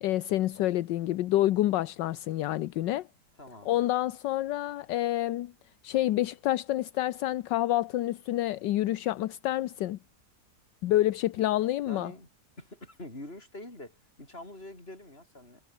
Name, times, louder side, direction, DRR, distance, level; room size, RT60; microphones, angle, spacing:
voice 1, 0.0-3.1 3.7-5.5 5.8-10.0 10.8-12.1, left 14 dB, 80° left, 1.4 m, -28 dB
voice 2, 3.4-3.9 11.9-12.3 12.6-15.6, left 1 dB, 30° left, 6.5 m, -45 dB
omnidirectional pair, 1.9 m